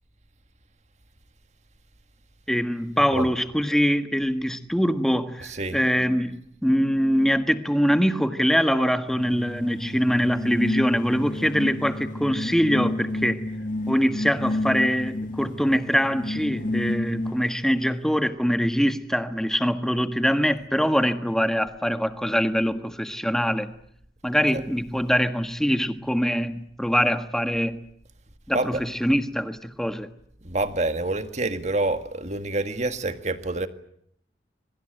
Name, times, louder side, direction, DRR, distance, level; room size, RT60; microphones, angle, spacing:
voice 1, 2.5-13.4 13.9-23.7 24.2-27.8 28.5-30.1, equal, 5° left, 1.5 m, -23 dB
voice 2, 5.4-5.8 24.5-24.6 28.5-28.8 30.4-33.7, right 2 dB, 40° right, 1.9 m, -27 dB
sound 1, 9.1-17.7, left 1 dB, 50° left, 1.5 m, -30 dB
26.0 x 23.5 x 9.1 m
head